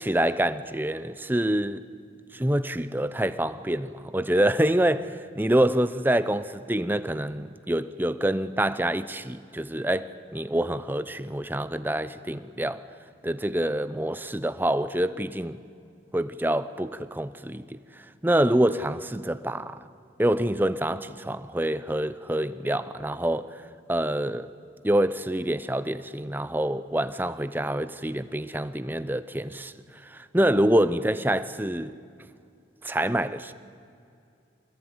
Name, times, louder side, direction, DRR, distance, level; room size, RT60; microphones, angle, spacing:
voice 1, 0.0-1.8 2.3-12.8 13.2-15.6 16.1-17.8 18.2-19.8 20.2-23.6 23.9-24.5 24.8-29.7 30.0-32.0 32.8-33.5, right 1 dB, 10° right, 0.7 m, -26 dB
24.0 x 20.0 x 9.6 m
head